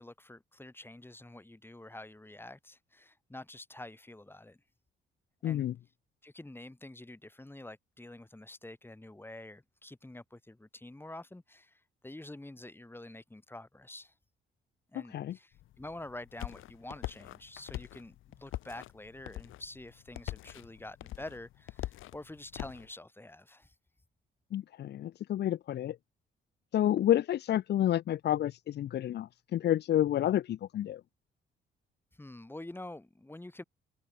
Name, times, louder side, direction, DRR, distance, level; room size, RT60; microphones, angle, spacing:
voice 1, 0.0-4.6 5.4-5.6 6.2-14.1 14.9-23.7 32.1-33.6, left 1 dB, 10° left, 4.9 m, -47 dB
voice 2, 5.4-5.7 14.9-15.4 24.5-26.0 26.7-31.0, left 12 dB, 60° left, 0.6 m, -29 dB
sound 1, 15.5-22.9, left 15 dB, 90° left, 5.0 m, -43 dB
cardioid pair, 90°, 20 cm